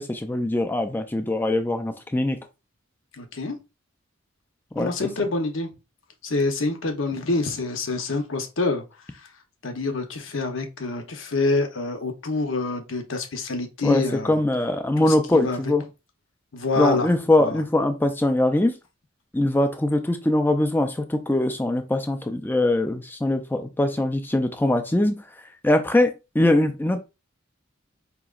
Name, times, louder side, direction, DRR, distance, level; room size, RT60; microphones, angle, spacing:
voice 1, 0.0-2.4 4.7-5.1 13.8-15.8 16.8-18.8 19.3-27.0, left 1 dB, 10° left, 0.4 m, -22 dB
voice 2, 3.2-3.6 4.8-5.7 6.2-8.8 9.6-14.4 15.0-15.6 16.5-17.1 17.4-17.6, left 3 dB, 80° left, 0.8 m, -26 dB
4.9 x 2.9 x 2.4 m
head